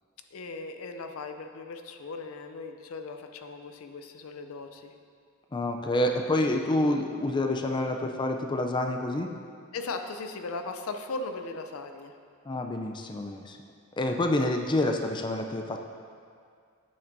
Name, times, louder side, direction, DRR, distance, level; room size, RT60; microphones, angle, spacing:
voice 1, 0.3-4.9 9.7-12.1, left 3 dB, 80° left, 6 dB, 0.5 m, -38 dB
voice 2, 5.5-9.3 12.5-13.6 14.0-15.8, left 1 dB, 20° left, 4 dB, 0.4 m, -28 dB
8.6 x 8.5 x 2.6 m, 2.2 s
head